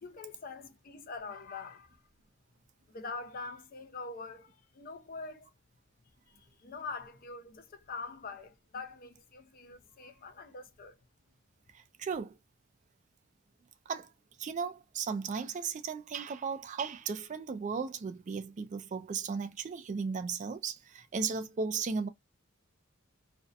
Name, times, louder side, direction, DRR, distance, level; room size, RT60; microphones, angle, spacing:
voice 1, 0.0-2.0 2.9-5.5 6.3-11.0, left 4 dB, 45° left, 0.4 m, -44 dB
voice 2, 11.7-12.4 13.9-14.1 14.4-22.1, right 5 dB, 35° right, 0.3 m, -36 dB
2.6 x 2.0 x 2.3 m
head